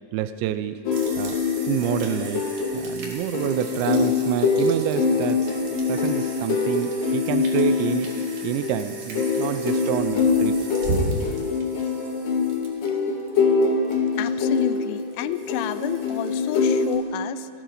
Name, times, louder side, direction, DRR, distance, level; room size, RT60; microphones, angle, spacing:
voice 1, 0.1-0.8 1.2-1.4 1.7-2.5 2.7-5.5 5.9-8.1 8.4-10.6, right 11 dB, 75° right, 11 dB, 2.8 m, -27 dB
sound 1, 0.9-16.9, left 4 dB, 60° left, 3.6 m, -24 dB
sound 2, 0.9-17.0, right 2 dB, 50° right, 3.6 m, -37 dB
voice 2, 14.2-17.5, left 13 dB, 80° left, 12 dB, 3.1 m, -30 dB
29.0 x 19.5 x 5.2 m, 2.2 s
omnidirectional pair, 5.8 m